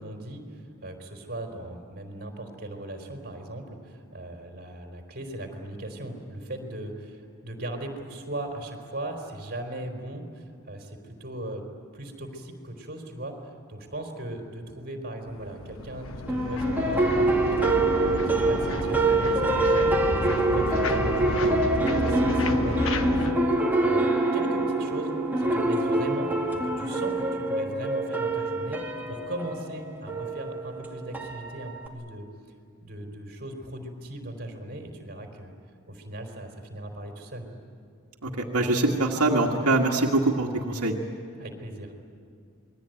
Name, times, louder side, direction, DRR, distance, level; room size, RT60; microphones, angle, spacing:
voice 1, 0.0-11.6 11.9-19.9 20.2-23.4 23.8-32.3 32.8-35.5 35.9-37.5 41.4-41.9, right 1 dB, 45° right, 3 dB, 3.9 m, -38 dB
sound 1, 15.3-23.3, left 2 dB, 65° left, 1.3 m, -32 dB
sound 2, 16.3-31.9, right 2 dB, 10° right, 2.4 m, -25 dB
voice 2, 38.2-41.0, right 2 dB, 90° right, -1 dB, 1.9 m, -24 dB
28.0 x 21.5 x 9.2 m, 2.3 s
head